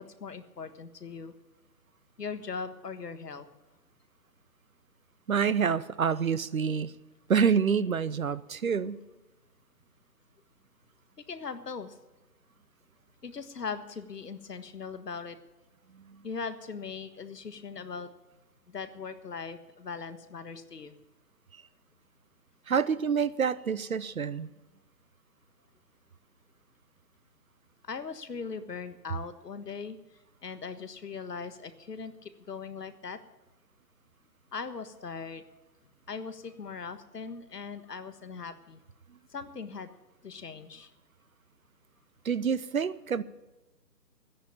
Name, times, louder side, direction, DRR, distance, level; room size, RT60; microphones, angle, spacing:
voice 1, 0.0-1.3 2.2-3.5 11.3-12.0 13.2-15.4 16.2-18.1 18.7-20.9 27.8-30.0 30.4-33.2 34.5-35.4 36.1-38.8 39.3-39.9 40.2-40.9, left 5 dB, 70° left, 11 dB, 1.5 m, -39 dB
voice 2, 5.3-6.9 7.3-9.0 16.1-16.2 22.7-24.5 42.2-43.2, right 6 dB, 55° right, 17 dB, 0.7 m, -27 dB
13.5 x 10.5 x 7.1 m, 1.1 s
hypercardioid pair, 165°, 50 cm